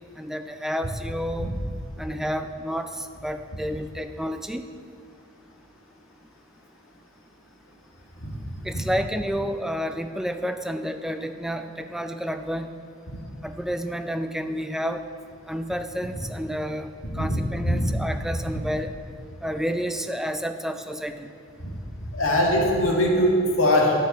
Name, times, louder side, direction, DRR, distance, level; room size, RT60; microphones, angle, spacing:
voice 1, 0.2-1.5 2.0-4.6 8.6-12.7 13.4-15.0 15.5-18.9 19.4-21.3, equal, ahead, 8 dB, 0.3 m, -30 dB
voice 2, 17.0-17.9 21.6-21.7 22.1-23.9, left 1 dB, 85° left, -1 dB, 1.8 m, -22 dB
9.5 x 5.7 x 6.5 m, 2.7 s
head